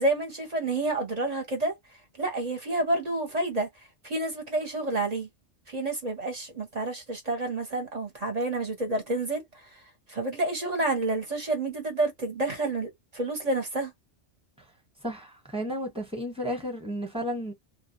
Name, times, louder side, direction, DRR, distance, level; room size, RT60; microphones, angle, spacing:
voice 1, 0.0-1.7 2.2-3.7 4.0-5.3 5.7-9.4 10.1-13.9, right 2 dB, 40° right, 0.8 m, -29 dB
voice 2, 15.0-17.5, equal, 5° right, 0.9 m, -33 dB
2.2 x 2.2 x 2.8 m
omnidirectional pair, 1.2 m